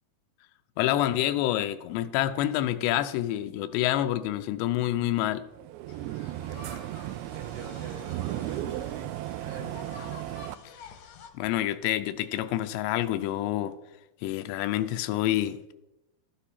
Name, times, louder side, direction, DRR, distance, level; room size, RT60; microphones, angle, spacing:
voice 1, 0.8-5.4 11.3-13.7 14.2-15.6, left 13 dB, 90° left, 11 dB, 2.8 m, -27 dB
sound 1, 5.5-10.6, right 14 dB, 85° right, 2.2 m, -35 dB
sound 2, 5.9-11.3, left 6 dB, 70° left, 1.9 m, -49 dB
voice 2, 6.3-7.0 7.3-10.0, right 4 dB, 70° right, 1 dB, 3.6 m, -45 dB
13.0 x 9.9 x 4.3 m, 0.96 s
omnidirectional pair, 4.9 m